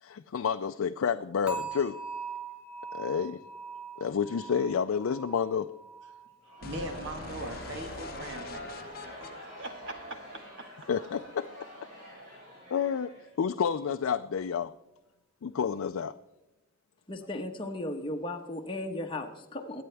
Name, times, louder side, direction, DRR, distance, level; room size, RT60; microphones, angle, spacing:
voice 1, 0.0-2.0 2.9-3.4 4.0-5.7 10.9-11.5 12.7-14.7 15.4-16.1, left 7 dB, 80° left, 9 dB, 0.4 m, -30 dB
sound 1, 1.5-8.5 8.8-9.2 9.7-9.8, right 5 dB, 5° right, 1.7 m, -43 dB
Crowd, 6.4-13.7, equal, 45° right, 5.5 m, -46 dB
sound 2, 6.6-10.6, left 3 dB, 45° left, 0.7 m, -45 dB
voice 2, 6.6-10.2 10.6-10.7, right 1 dB, 60° right, 5 dB, 1.6 m, -41 dB
voice 3, 17.1-19.8, left 1 dB, 25° left, 2 dB, 1.1 m, -36 dB
23.0 x 8.7 x 3.4 m, 0.95 s
head